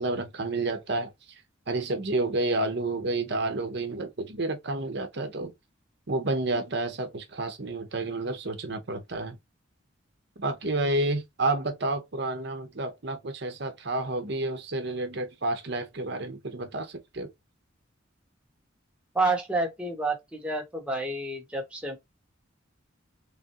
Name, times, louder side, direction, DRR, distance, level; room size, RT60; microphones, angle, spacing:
voice 1, 0.0-1.4 1.7-5.5 6.1-9.4 10.4-17.3, right 2 dB, 60° right, 0.9 m, -30 dB
voice 2, 19.1-22.0, right 2 dB, 5° right, 1.0 m, -29 dB
3.7 x 3.2 x 2.9 m
head